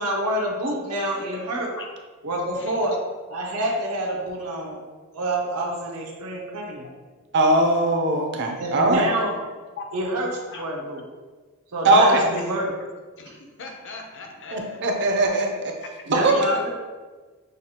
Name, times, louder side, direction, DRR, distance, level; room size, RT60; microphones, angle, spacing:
voice 1, 0.0-1.7 2.2-2.9 3.3-4.8 5.1-6.9 8.6-9.4 9.9-11.0 11.7-12.7 13.3-13.4 16.1-16.7, right 1 dB, 80° right, -2 dB, 0.8 m, -27 dB
voice 2, 0.9-1.2 1.7-1.9 2.5-2.8 9.8-9.9 10.5-10.6 11.9-12.3 13.2-14.8 16.2-16.6, left 3 dB, 55° left, 2 dB, 0.6 m, -39 dB
voice 3, 7.3-9.1 11.8-12.2 14.5-15.5 16.2-16.3, right 2 dB, 50° right, 3 dB, 0.6 m, -19 dB
6.3 x 2.4 x 2.9 m, 1.4 s
head